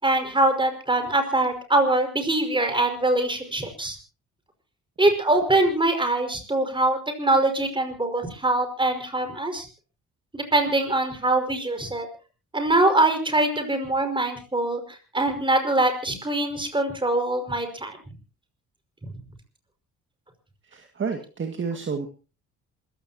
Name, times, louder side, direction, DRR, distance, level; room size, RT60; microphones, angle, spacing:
voice 1, 0.0-4.0 5.0-9.7 10.3-12.1 12.5-18.0 19.0-19.1, right 2 dB, 15° right, 6 dB, 5.4 m, -23 dB
voice 2, 20.7-22.1, right 5 dB, 40° right, 5 dB, 2.1 m, -30 dB
27.0 x 15.5 x 2.9 m, 0.34 s
cardioid pair, 90°, 30 cm